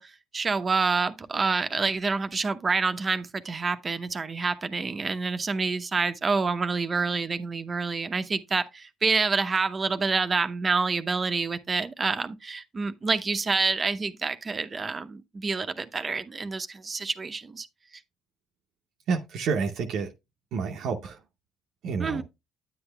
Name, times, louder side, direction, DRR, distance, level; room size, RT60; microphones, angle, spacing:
voice 1, 0.0-17.7 22.0-22.2, right 4 dB, 35° right, 0.7 m, -27 dB
voice 2, 19.1-20.1 20.5-21.2 21.8-22.2, right 5 dB, 70° right, 0.7 m, -29 dB
9.5 x 8.0 x 2.3 m
hypercardioid pair, 60°, 0 cm